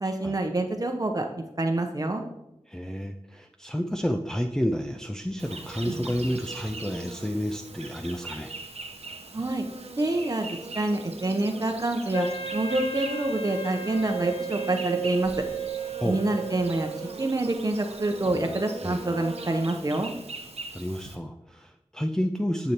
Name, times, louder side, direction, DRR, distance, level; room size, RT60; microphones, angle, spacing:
voice 1, 0.0-2.2 9.3-9.6 10.0-12.3 12.5-15.3 16.0-16.9 17.2-20.1, right 2 dB, 35° right, 4 dB, 0.8 m, -27 dB
voice 2, 2.7-8.5 16.0-16.2 18.8-19.0 20.7-22.7, equal, 5° left, 3 dB, 0.4 m, -30 dB
Insect, 5.4-21.1, right 3 dB, 85° right, 1.0 m, -41 dB
Wind instrument woodwind instrument, 12.1-17.2, right 5 dB, 75° left, 1.3 m, -34 dB
9.5 x 6.8 x 2.9 m, 0.87 s
wide cardioid pair, 70°, 11 cm